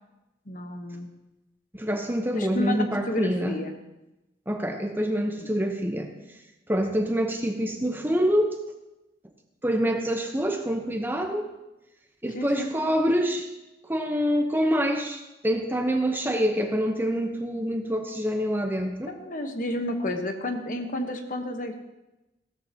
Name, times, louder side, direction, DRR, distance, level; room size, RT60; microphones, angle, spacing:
voice 1, 0.5-1.1 2.3-3.7 5.4-5.5 12.3-12.7 19.1-21.7, left 1 dB, 50° left, 5 dB, 1.2 m, -31 dB
voice 2, 1.7-3.6 4.5-6.1 6.7-8.6 9.6-11.5 12.2-13.5 13.9-19.1, equal, 10° right, 4 dB, 0.9 m, -26 dB
16.5 x 13.5 x 2.9 m, 0.98 s
head